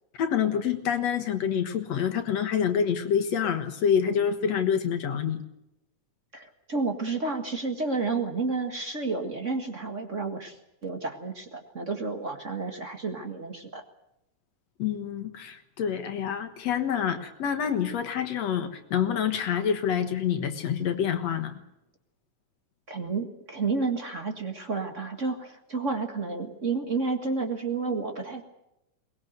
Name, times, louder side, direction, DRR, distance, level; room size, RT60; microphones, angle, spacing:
voice 1, 0.2-5.4 14.8-21.6, left 8 dB, 65° left, 6 dB, 2.5 m, -27 dB
voice 2, 6.3-13.8 22.9-28.4, right 4 dB, 30° right, 5 dB, 1.7 m, -31 dB
22.5 x 20.5 x 8.1 m, 0.87 s
omnidirectional pair, 3.4 m